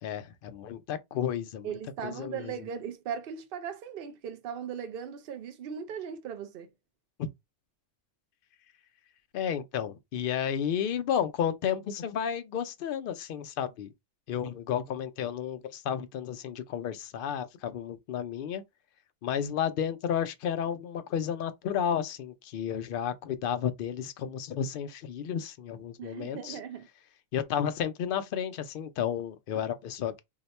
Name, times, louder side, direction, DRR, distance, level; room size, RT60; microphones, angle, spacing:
voice 1, 0.0-1.7 2.0-2.5 7.2-7.3 9.3-13.9 14.3-18.6 19.2-26.6 27.3-30.2, left 8 dB, 60° left, 0.6 m, -32 dB
voice 2, 1.6-6.7 26.0-26.9, right 7 dB, 60° right, 0.7 m, -38 dB
2.8 x 2.2 x 4.1 m
omnidirectional pair, 1.2 m